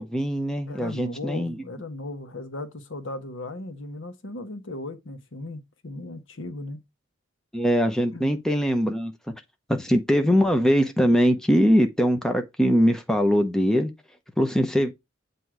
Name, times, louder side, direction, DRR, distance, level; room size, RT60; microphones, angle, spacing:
voice 1, 0.0-1.6 7.5-9.1 9.7-13.9 14.4-14.9, equal, 5° left, 0.7 m, -22 dB
voice 2, 0.7-6.8 8.1-8.3, left 2 dB, 80° left, 1.0 m, -37 dB
7.6 x 2.7 x 4.7 m
head